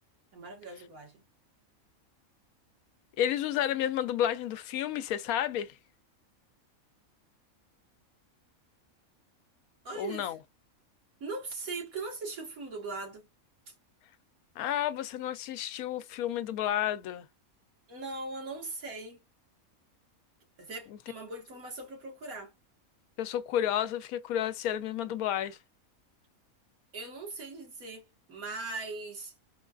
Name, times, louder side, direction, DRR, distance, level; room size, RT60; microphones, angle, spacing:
voice 1, 0.3-1.2 9.8-10.3 11.2-13.3 13.7-13.8 17.9-19.2 20.6-22.5 26.9-29.3, right 3 dB, 80° right, 2.0 m, -40 dB
voice 2, 3.2-5.7 10.0-10.4 14.6-17.2 23.2-25.6, left 11 dB, 90° left, 1.1 m, -31 dB
4.4 x 2.3 x 2.4 m
omnidirectional pair, 1.5 m